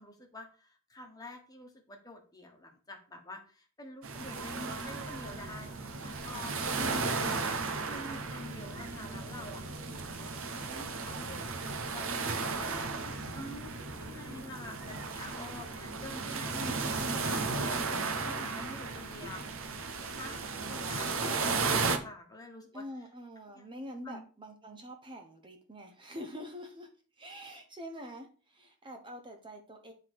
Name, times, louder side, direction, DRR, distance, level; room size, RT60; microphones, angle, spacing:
voice 1, 0.0-9.6 10.2-11.6 11.9-12.7 13.3-19.8 20.1-22.8 23.5-23.7 24.0-24.3, left 1 dB, 15° left, 3 dB, 1.4 m, -47 dB
sound 1, 4.0-22.0, right 4 dB, 65° right, 1.0 m, -35 dB
voice 2, 6.7-7.2 12.6-13.1 16.5-17.2 20.6-21.8 22.7-26.9 27.2-29.9, equal, 20° right, 4 dB, 0.8 m, -46 dB
9.5 x 3.9 x 4.7 m, 0.38 s
head